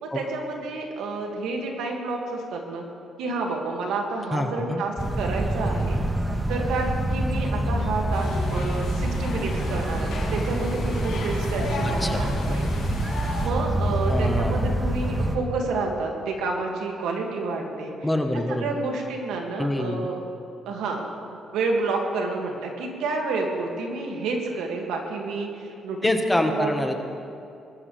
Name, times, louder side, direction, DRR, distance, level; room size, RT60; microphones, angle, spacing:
voice 1, 0.0-2.8 3.2-6.0 6.5-12.9 13.4-17.9 18.5-20.2 20.7-21.1 21.5-26.1 26.5-27.0, right 3 dB, 90° right, 1 dB, 2.2 m, -29 dB
voice 2, 4.3-4.8 12.0-12.3 14.1-14.7 18.0-18.7 19.6-20.1 26.0-26.9, left 1 dB, 10° left, 4 dB, 1.3 m, -25 dB
sound 1, 5.0-15.4, right 1 dB, 20° right, 1.3 m, -26 dB
sound 2, 8.1-13.5, left 3 dB, 85° left, 3.6 m, -35 dB
21.0 x 13.0 x 3.4 m, 2.6 s
cardioid pair, 90°, 0 cm